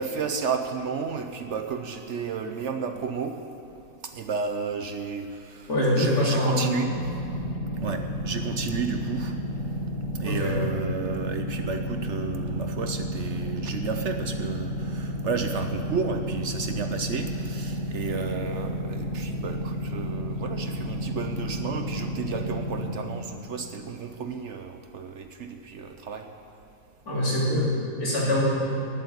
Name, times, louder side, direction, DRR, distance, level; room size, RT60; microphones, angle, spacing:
voice 1, 0.0-3.4 4.0-5.7 6.0-6.9 7.8-9.3 10.1-26.3, right 5 dB, 60° right, 6 dB, 0.9 m, -32 dB
voice 2, 5.7-6.7 10.2-10.6 27.1-28.4, left 1 dB, 75° left, -6 dB, 3.9 m, -24 dB
sound 1, 6.8-22.8, equal, 20° right, 4.0 m, -32 dB
11.0 x 8.5 x 9.8 m, 2.6 s
omnidirectional pair, 1.6 m